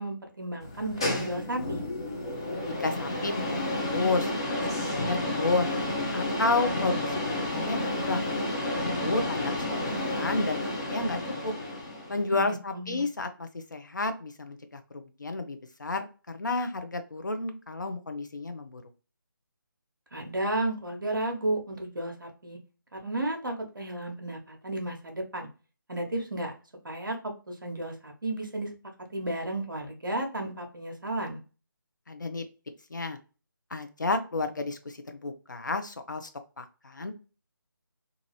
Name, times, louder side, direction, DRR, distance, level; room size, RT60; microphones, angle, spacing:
voice 1, 0.0-1.8 12.3-13.0 20.1-22.6 22.9-25.5 25.9-26.5 26.8-28.7 29.1-31.4, right 1 dB, 65° right, 2 dB, 0.8 m, -33 dB
sound 1, 0.6-12.2, left 1 dB, 15° left, 0.3 m, -31 dB
voice 2, 2.8-3.6 3.9-5.7 6.1-8.3 8.8-9.8 10.1-11.5 12.1-18.8 32.1-32.4 32.9-33.2 33.7-36.3 36.6-37.1, left 3 dB, 60° left, 7 dB, 0.6 m, -31 dB
2.7 x 2.5 x 3.0 m, 0.34 s
figure-of-eight pair, 155°, 12 cm